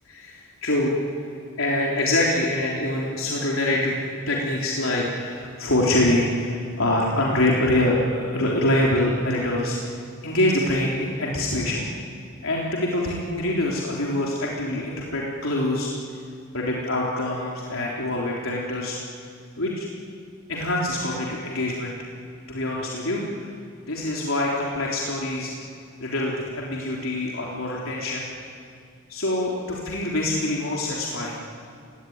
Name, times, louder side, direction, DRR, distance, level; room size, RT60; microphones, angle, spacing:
voice 1, 0.1-1.2 1.6-4.0 4.3-10.0 10.2-11.9 12.4-15.9 16.5-19.0 19.6-19.9 20.5-22.0 22.5-23.5 23.8-25.5 26.0-28.4 29.1-31.4, left 1 dB, 80° left, -3 dB, 3.7 m, -25 dB
29.5 x 18.5 x 9.6 m, 2.3 s
head